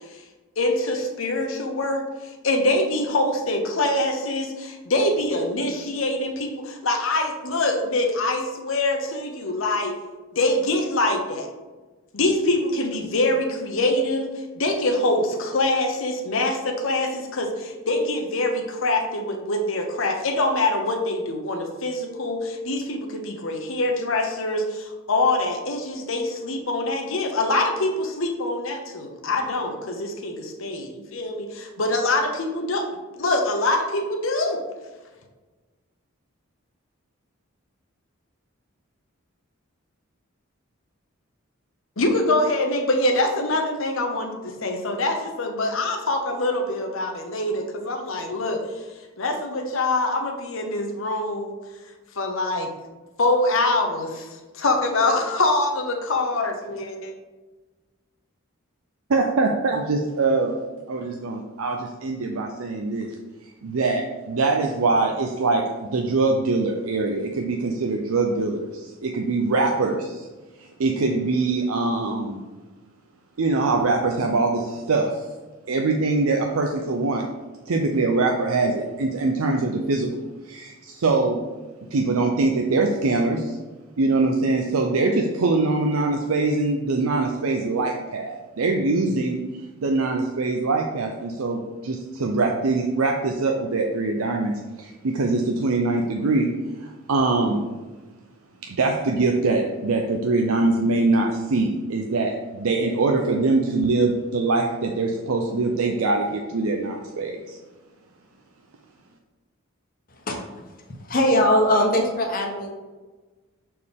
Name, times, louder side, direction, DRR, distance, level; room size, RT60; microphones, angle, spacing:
voice 1, 0.6-10.0 10.3-11.5 12.1-14.3 14.6-32.9 33.2-34.6 42.0-48.6 49.2-51.5 52.2-52.7 53.2-57.1, left 2 dB, 70° left, 4 dB, 0.9 m, -24 dB
voice 2, 59.1-60.6 60.9-63.1 63.6-70.3 70.6-72.4 73.4-75.2 75.7-77.2 77.7-80.1 80.4-81.4 81.9-83.6 84.0-89.4 89.8-96.5 96.8-97.6 98.6-107.6, right 3 dB, 90° right, 2 dB, 0.6 m, -23 dB
voice 3, 110.1-110.6 111.0-112.7, left 1 dB, 40° left, 2 dB, 1.0 m, -21 dB
6.5 x 4.3 x 3.6 m, 1.3 s
head